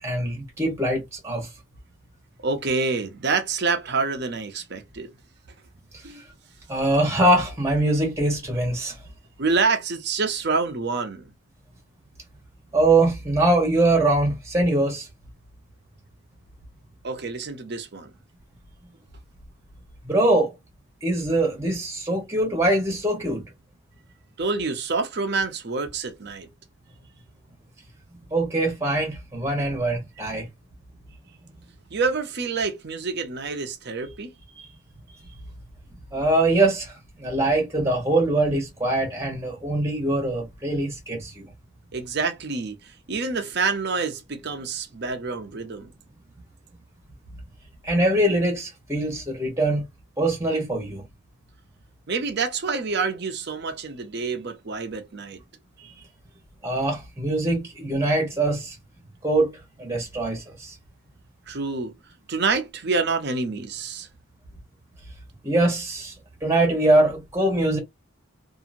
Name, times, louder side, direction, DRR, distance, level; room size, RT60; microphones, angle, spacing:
voice 1, 0.0-1.5 6.1-6.2 6.7-9.0 12.7-15.1 20.0-20.5 21.0-23.4 28.3-30.5 34.6-34.7 36.1-41.4 47.8-49.8 50.2-51.0 56.6-58.8 59.2-60.7 65.4-66.1 66.4-67.8, right 2 dB, 15° right, 1.1 m, -23 dB
voice 2, 2.4-5.1 6.0-6.2 9.4-11.3 17.0-18.1 24.4-26.5 31.9-34.3 41.9-45.9 52.1-55.4 55.8-56.0 61.5-61.9 62.3-64.1, right 4 dB, 50° right, 0.7 m, -27 dB
2.8 x 2.7 x 2.6 m
head